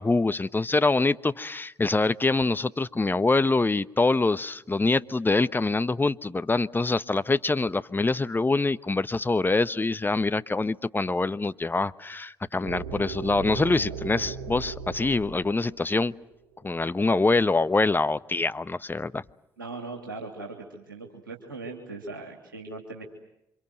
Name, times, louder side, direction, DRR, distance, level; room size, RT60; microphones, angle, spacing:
voice 1, 0.0-16.1 16.6-19.2, left 3 dB, 20° left, 14 dB, 1.1 m, -25 dB
sound 1, 12.7-16.6, right 6 dB, 70° right, 3.3 m, -37 dB
voice 2, 19.6-23.0, right 3 dB, 90° right, 1 dB, 2.9 m, -39 dB
29.0 x 26.0 x 7.8 m, 0.83 s
figure-of-eight pair, 45°, 11 cm